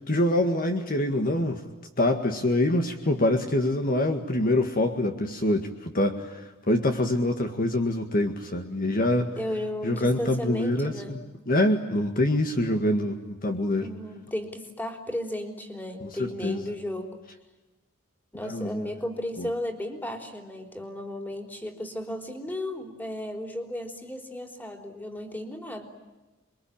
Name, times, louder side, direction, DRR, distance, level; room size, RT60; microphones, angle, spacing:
voice 1, 0.1-1.6 2.0-9.3 9.8-11.2 11.5-13.9 16.0-16.6 18.4-18.9 19.4-19.5, left 1 dB, 45° left, 5 dB, 1.9 m, -25 dB
voice 2, 9.4-11.2 13.8-17.2 18.3-25.9, left 1 dB, 10° left, 4 dB, 3.8 m, -34 dB
28.0 x 23.0 x 8.9 m, 1.1 s
head